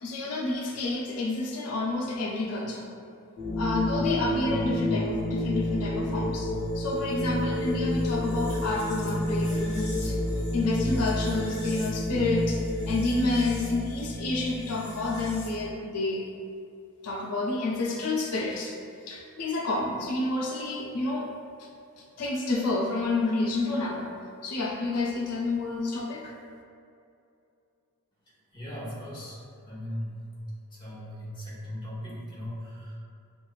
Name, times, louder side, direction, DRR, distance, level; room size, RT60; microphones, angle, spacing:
voice 1, 0.0-2.9 3.6-10.2 10.5-16.2 17.0-18.7 19.1-21.4 22.2-24.1 24.4-26.3, left 2 dB, 90° left, -1 dB, 0.6 m, -29 dB
sound 1, 3.4-15.7, left 1 dB, 55° left, 1.1 m, -30 dB
voice 2, 28.5-30.3 30.7-33.0, equal, 20° left, -9 dB, 1.2 m, -38 dB
7.2 x 2.5 x 2.4 m, 2.6 s
head